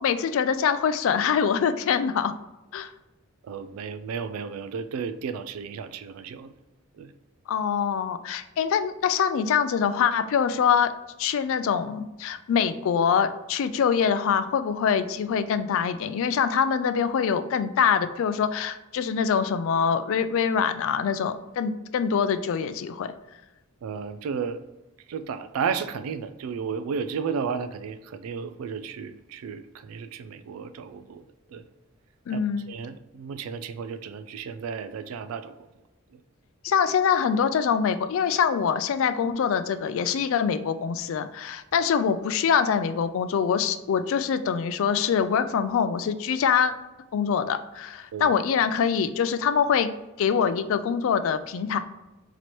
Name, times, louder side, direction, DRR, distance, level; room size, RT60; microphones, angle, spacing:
voice 1, 0.0-2.3 2.7-2.9 7.5-10.9 11.2-23.1 32.3-32.7 36.6-46.7 47.1-49.9 50.2-51.8, left 7 dB, 65° left, 11 dB, 0.3 m, -24 dB
voice 2, 3.4-6.5 6.9-7.1 23.8-24.6 25.1-31.2 31.5-31.6 32.3-32.4 32.7-35.6 36.1-36.2 48.1-48.3, right 6 dB, 75° right, 11 dB, 0.3 m, -33 dB
3.1 x 2.9 x 4.1 m, 0.99 s
head